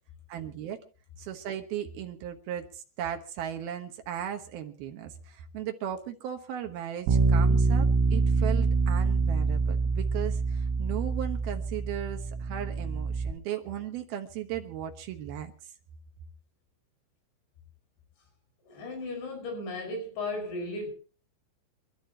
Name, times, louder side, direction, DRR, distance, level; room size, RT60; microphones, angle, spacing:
voice 1, 0.3-0.8 1.2-15.7, right 10 dB, 70° right, 5 dB, 2.4 m, -37 dB
Bass guitar, 7.1-13.3, right 3 dB, 90° right, 4.9 m, -25 dB
voice 2, 18.7-20.9, left 2 dB, 60° left, 4 dB, 7.3 m, -35 dB
29.0 x 12.5 x 2.9 m, 0.36 s
omnidirectional pair, 5.9 m